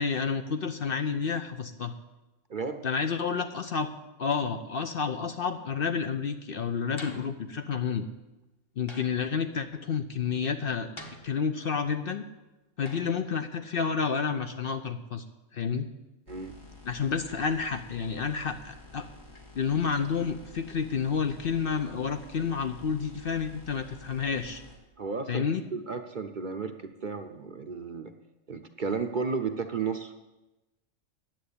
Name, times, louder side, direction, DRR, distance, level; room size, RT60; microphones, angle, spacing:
voice 1, 0.0-1.9 2.8-3.9 4.2-8.1 8.8-10.9 11.2-12.2 12.8-15.2 15.5-15.9 16.9-19.1 19.6-24.6 25.3-25.6, left 6 dB, 55° left, 8 dB, 0.8 m, -30 dB
voice 2, 2.5-2.9 16.3-16.5 25.0-25.5 25.7-28.1 28.5-30.1, right 5 dB, 45° right, 7 dB, 0.7 m, -33 dB
sound 1, 7.0-7.4 8.9-9.3 11.0-11.7 12.8-13.2, left 1 dB, 25° left, 1.0 m, -46 dB
sound 2, 16.3-24.8, left 2 dB, 75° left, 2.6 m, -50 dB
10.5 x 7.8 x 8.5 m, 1.0 s
omnidirectional pair, 1.3 m